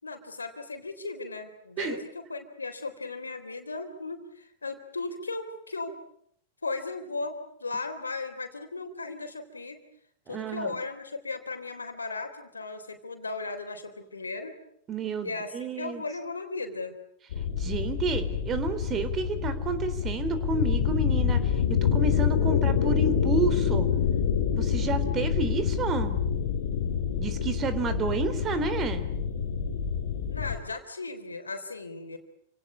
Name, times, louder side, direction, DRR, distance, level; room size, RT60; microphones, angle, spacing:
voice 1, 0.0-6.0 6.6-9.8 10.3-14.6 15.2-17.0 30.3-32.2, left 3 dB, 90° left, 7 dB, 3.7 m, -36 dB
voice 2, 10.3-10.8 14.9-16.0 17.6-23.9 24.6-26.2 27.2-29.0, right 5 dB, 30° right, 12 dB, 3.7 m, -30 dB
sound 1, 17.3-30.6, left 7 dB, 65° left, 2.8 m, -27 dB
29.0 x 18.0 x 9.7 m, 0.70 s
figure-of-eight pair, 95°, 0 cm